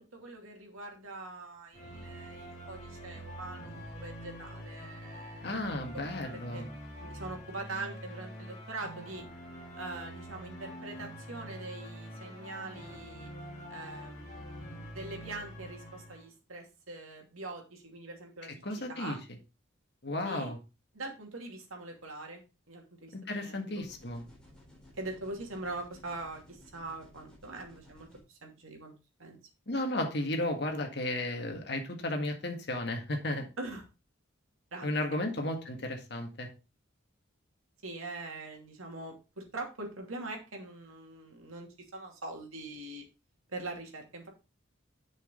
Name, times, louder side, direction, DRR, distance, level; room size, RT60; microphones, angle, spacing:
voice 1, 0.0-5.7 6.3-6.7 7.0-9.3 9.8-13.3 13.7-18.6 18.9-19.2 20.2-20.5 20.9-22.4 22.7-23.8 25.0-28.9 29.2-29.4 33.6-33.9 34.7-35.2 37.8-43.0 43.5-44.3, right 2 dB, 90° right, 2 dB, 2.7 m, -43 dB
sound 1, 1.7-16.2, equal, 35° left, 2.6 m, -45 dB
voice 2, 5.4-6.7 18.6-19.2 20.0-20.6 23.1-24.2 29.7-33.5 34.8-36.5, left 1 dB, 55° left, 4 dB, 1.8 m, -34 dB
sound 2, 23.8-28.2, left 1 dB, 5° left, 3.7 m, -57 dB
8.4 x 6.4 x 3.8 m, 0.28 s
head